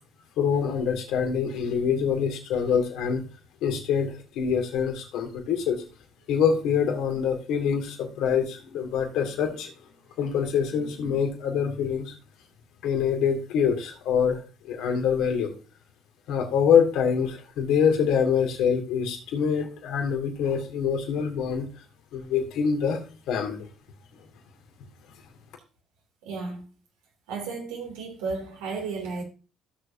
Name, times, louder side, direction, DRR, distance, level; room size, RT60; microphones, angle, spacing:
voice 1, 0.4-3.2 3.6-5.8 6.3-9.7 10.2-12.1 12.8-15.5 16.3-21.7 22.1-23.7, left 7 dB, 65° left, 2.5 m, -25 dB
voice 2, 26.2-26.6 27.3-29.2, right 4 dB, 75° right, 2.9 m, -33 dB
15.5 x 6.6 x 2.8 m
hypercardioid pair, 55°, 0 cm